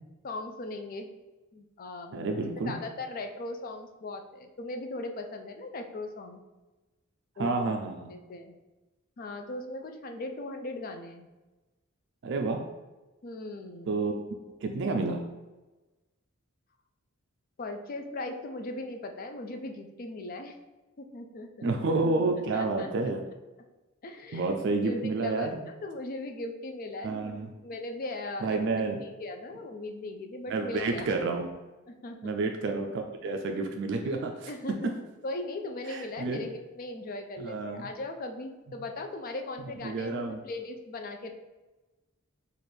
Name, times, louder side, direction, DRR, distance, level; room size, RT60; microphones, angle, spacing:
voice 1, 0.2-1.1 1.5-6.4 7.4-7.8 8.1-8.6 9.2-11.3 13.2-14.0 17.6-20.5 21.0-22.0 22.5-22.9 24.0-24.5 24.8-27.2 27.6-28.6 29.0-31.1 31.9-32.4 34.5-35.0 35.2-41.3, left 2 dB, 45° left, 5 dB, 0.4 m, -38 dB
voice 2, 2.1-2.8 7.4-8.1 12.2-12.6 13.9-14.2 14.6-15.2 21.6-23.2 24.3-25.6 27.0-27.5 28.4-29.0 30.5-31.5 32.2-34.5 35.9-36.4 37.4-37.9 39.8-40.4, right 3 dB, 60° right, 4 dB, 0.3 m, -29 dB
3.2 x 2.5 x 4.3 m, 1.1 s
head